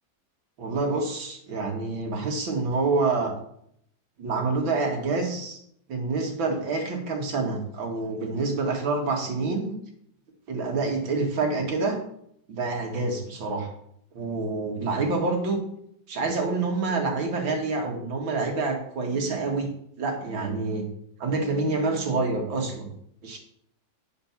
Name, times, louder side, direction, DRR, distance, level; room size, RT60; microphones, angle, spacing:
voice 1, 0.6-3.3 4.2-5.6 5.9-9.7 10.5-12.0 12.5-13.7 14.2-15.6 16.1-19.7 20.0-20.8 21.2-22.9 23.2-23.4, right 3 dB, 80° right, 1 dB, 2.5 m, -27 dB
9.9 x 5.2 x 5.8 m, 0.70 s
omnidirectional pair, 2.1 m